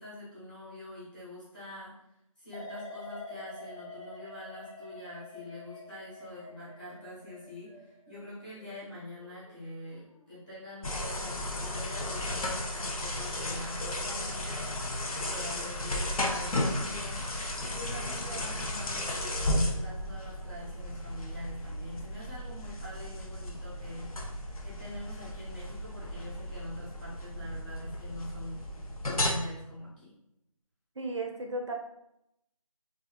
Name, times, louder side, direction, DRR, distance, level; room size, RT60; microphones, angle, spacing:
voice 1, 0.0-1.9 2.4-7.7 8.1-14.6 15.2-17.2 17.6-24.1 24.6-28.6 29.0-30.1, left 1 dB, 15° left, -11 dB, 0.8 m, -44 dB
sound 1, 2.5-9.5 9.9-10.3, left 2 dB, 55° left, 1.0 m, -47 dB
sound 2, 10.8-29.3, left 1 dB, 75° left, 0.6 m, -34 dB
voice 2, 31.0-31.7, right 2 dB, 55° right, 2 dB, 0.4 m, -34 dB
2.7 x 2.3 x 2.4 m, 0.81 s
figure-of-eight pair, 170°, 18 cm